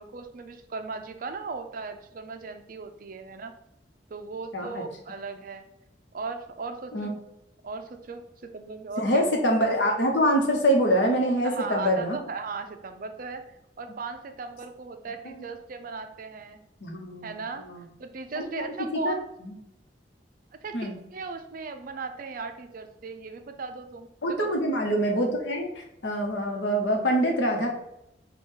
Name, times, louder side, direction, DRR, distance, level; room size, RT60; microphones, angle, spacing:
voice 1, 0.0-3.6 4.1-5.7 6.1-7.1 7.6-9.2 11.4-13.4 13.8-16.6 17.2-17.7 18.0-19.2 20.5-24.6, right 4 dB, 50° right, 7 dB, 0.5 m, -37 dB
voice 2, 4.5-4.8 6.9-7.1 9.0-12.2 15.2-15.3 16.8-17.4 17.7-17.8 18.4-18.6 19.0-19.1 19.4-19.5 20.7-21.0 24.2-27.7, equal, 85° left, 2 dB, 1.0 m, -25 dB
4.8 x 2.4 x 4.5 m, 0.84 s
head